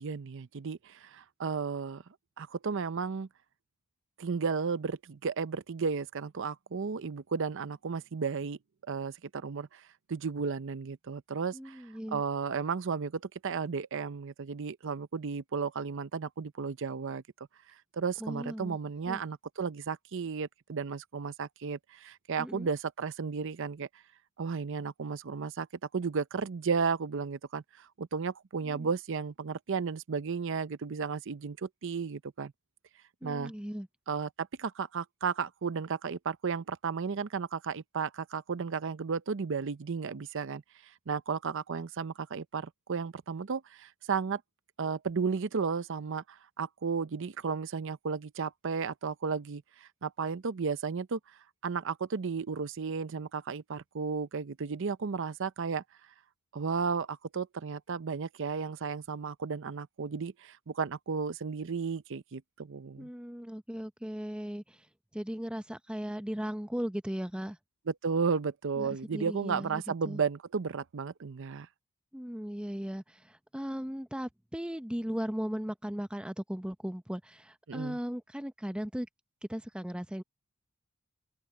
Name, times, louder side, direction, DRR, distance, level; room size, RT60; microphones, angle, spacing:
voice 1, 0.0-2.0 2.4-3.3 4.2-8.6 8.9-9.8 10.1-11.8 12.1-17.2 17.9-23.9 24.4-25.7 25.9-32.5 33.2-33.5 34.1-40.6 41.1-44.4 44.8-51.2 51.6-55.8 56.5-63.1 67.9-71.7 77.7-78.0, right 5 dB, 60° right, 0.6 m, -34 dB
voice 2, 11.5-12.2 18.2-18.8 19.1-19.2 22.4-22.7 28.6-28.9 33.2-33.9 63.0-64.8 65.1-67.6 68.8-70.2 72.1-79.1 79.5-80.2, equal, 5° right, 0.8 m, -37 dB
open air
head